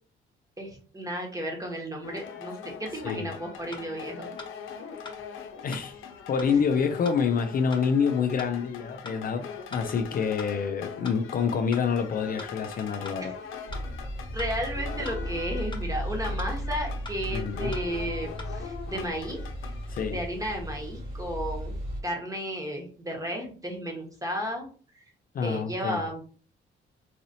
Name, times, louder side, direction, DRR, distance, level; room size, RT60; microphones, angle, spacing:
voice 1, 0.6-4.3 13.2-13.3 14.3-19.4 20.1-21.8 22.0-24.7 25.4-26.2, equal, 15° right, 1.3 m, -33 dB
sound 1, 2.0-20.1, left 7 dB, 85° left, 0.7 m, -42 dB
sound 2, 3.7-3.8 4.4-4.5 5.0-5.2 5.7-5.9 6.4-6.5 7.0-7.2 7.7-7.8 8.4-8.5 9.0-9.2 9.7-9.9 10.4-10.5 11.0-11.2 11.7-11.9 12.4-12.5 13.0-13.2 13.7-13.8 14.4-14.5 15.0-15.2 15.7-15.9 16.4-16.5 17.0-17.2 17.7-17.9 18.4-18.5, left 3 dB, 25° left, 1.0 m, -42 dB
voice 2, 5.6-13.3 17.3-17.7 19.9-20.2 25.3-26.0, left 6 dB, 45° left, 0.4 m, -27 dB
sound 3, 13.7-22.0, equal, 45° right, 1.9 m, -35 dB
4.0 x 2.7 x 2.7 m
cardioid pair, 90°, 20 cm